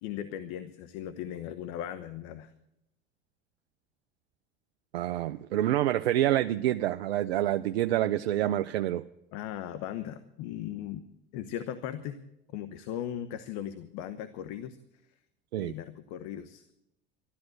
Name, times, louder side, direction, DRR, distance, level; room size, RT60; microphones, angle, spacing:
voice 1, 0.0-2.5 9.3-11.1 11.3-12.2 12.5-14.8 15.6-16.7, left 11 dB, 65° left, 11 dB, 1.0 m, -38 dB
voice 2, 4.9-9.1 15.5-15.7, right 13 dB, 90° right, 10 dB, 0.5 m, -27 dB
13.0 x 12.5 x 7.9 m, 0.84 s
hypercardioid pair, 85°, 30 cm